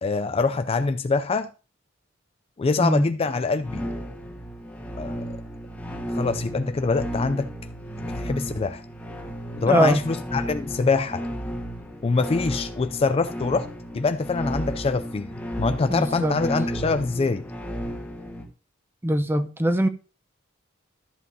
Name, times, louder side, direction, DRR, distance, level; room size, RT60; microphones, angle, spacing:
voice 1, 0.0-1.5 2.6-3.9 5.0-5.2 6.1-7.5 8.0-8.8 9.6-11.2 12.0-13.7 13.9-15.3 15.6-17.5, left 4 dB, 30° left, 0.3 m, -24 dB
voice 2, 2.8-3.1 9.6-10.0 15.9-16.4 19.0-19.9, right 1 dB, 10° right, 0.7 m, -22 dB
sound 1, 3.6-18.4, equal, 10° left, 1.5 m, -33 dB
13.5 x 7.6 x 2.7 m
head